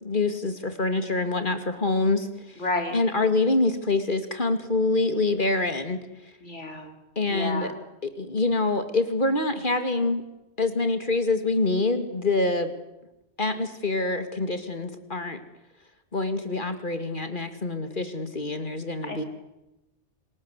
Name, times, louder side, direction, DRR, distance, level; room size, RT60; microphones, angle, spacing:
voice 1, 0.0-2.6 2.9-6.0 7.2-7.7 8.0-10.2 10.6-12.7 13.4-15.4 16.1-19.2, left 2 dB, 45° left, 9 dB, 2.6 m, -25 dB
voice 2, 2.6-3.0 6.4-6.9 7.3-7.7 19.0-19.3, left 2 dB, 90° left, 5 dB, 3.9 m, -31 dB
27.5 x 20.0 x 8.3 m, 0.94 s
omnidirectional pair, 1.2 m